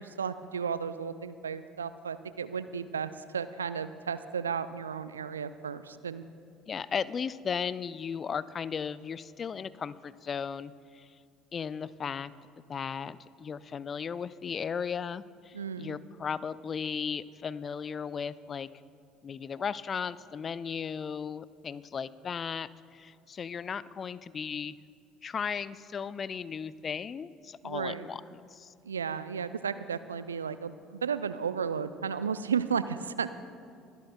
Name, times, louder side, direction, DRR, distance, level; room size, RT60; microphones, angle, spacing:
voice 1, 0.0-6.2 15.5-16.0 27.6-28.1 28.8-33.3, right 6 dB, 85° right, 13 dB, 0.3 m, -34 dB
voice 2, 6.7-11.1 11.5-18.7 19.2-24.8 25.2-28.2 28.5-28.7, left 6 dB, 35° left, 18 dB, 0.3 m, -36 dB
22.5 x 12.0 x 2.2 m, 2.4 s
figure-of-eight pair, 60°, 0 cm